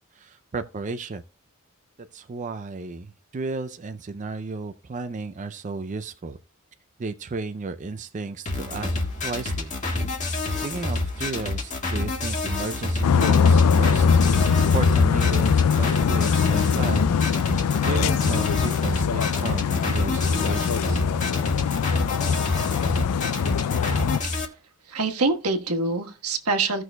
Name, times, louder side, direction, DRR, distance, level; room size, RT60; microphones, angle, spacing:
voice 1, 0.1-1.2 2.1-6.4 7.0-9.7 10.6-14.3 14.7-21.0, right 3 dB, 35° right, 0.4 m, -34 dB
sound 1, 8.5-24.5, left 2 dB, 35° left, 1.7 m, -28 dB
sound 2, 13.0-24.2, left 6 dB, 90° left, 0.4 m, -22 dB
voice 2, 24.9-26.8, right 3 dB, 85° right, 1.3 m, -25 dB
16.5 x 6.2 x 2.2 m
head